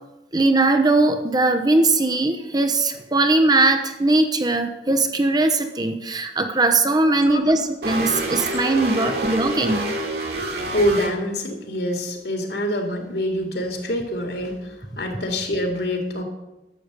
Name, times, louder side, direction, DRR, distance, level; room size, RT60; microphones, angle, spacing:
voice 1, 0.3-9.8, right 2 dB, 20° right, 7 dB, 0.9 m, -20 dB
sound 1, 7.8-11.1, right 2 dB, 60° right, 2.6 m, -27 dB
voice 2, 10.7-16.2, equal, 60° left, 4 dB, 2.5 m, -25 dB
12.0 x 7.5 x 8.2 m, 1.0 s
head